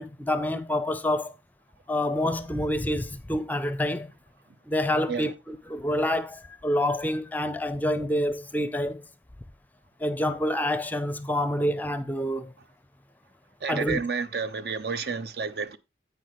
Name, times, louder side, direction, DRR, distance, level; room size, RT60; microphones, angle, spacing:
voice 1, 0.0-1.3 1.9-4.1 4.7-9.0 10.0-12.5 13.7-14.0, left 1 dB, 10° left, 0.5 m, -27 dB
voice 2, 13.6-15.8, right 5 dB, 60° right, 0.7 m, -30 dB
9.9 x 8.4 x 3.1 m
head